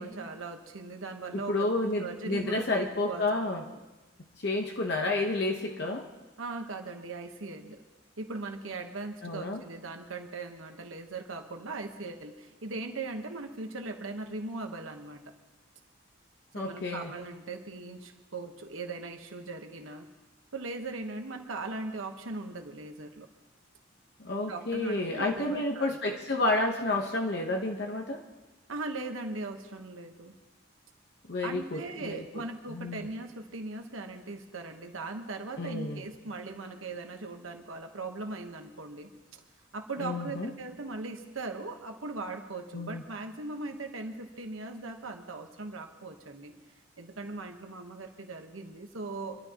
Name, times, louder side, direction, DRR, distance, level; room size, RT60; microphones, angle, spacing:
voice 1, 0.0-1.7 2.0-3.3 3.7-3.8 6.4-7.8 8.2-15.2 16.6-20.1 20.5-23.3 24.4-26.2 28.7-30.3 31.4-39.4 39.7-46.5 47.0-49.4, right 3 dB, 90° right, 4 dB, 1.1 m, -39 dB
voice 2, 1.3-3.6 4.4-6.1 9.2-9.6 16.5-17.1 24.2-28.2 31.3-32.2 32.7-33.1 35.6-36.0 40.0-40.5 42.7-43.0, left 2 dB, 55° left, 1 dB, 1.0 m, -30 dB
26.0 x 12.5 x 2.9 m, 1.1 s
head